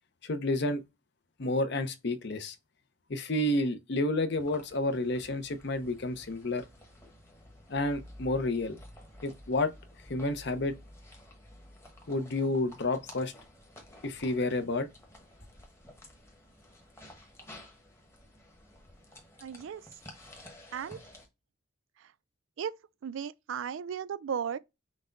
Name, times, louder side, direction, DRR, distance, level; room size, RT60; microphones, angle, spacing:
voice 1, 0.2-0.8 1.4-2.6 3.1-6.6 7.7-8.8 9.2-9.7 10.1-10.8 12.1-13.3 14.0-14.9, left 2 dB, 55° left, 0.7 m, -30 dB
sound 1, 4.4-21.3, left 1 dB, 15° left, 1.0 m, -52 dB
voice 2, 19.4-19.8 20.7-21.0 22.6-22.8 23.0-24.6, right 7 dB, 70° right, 0.3 m, -35 dB
6.1 x 2.2 x 3.7 m
head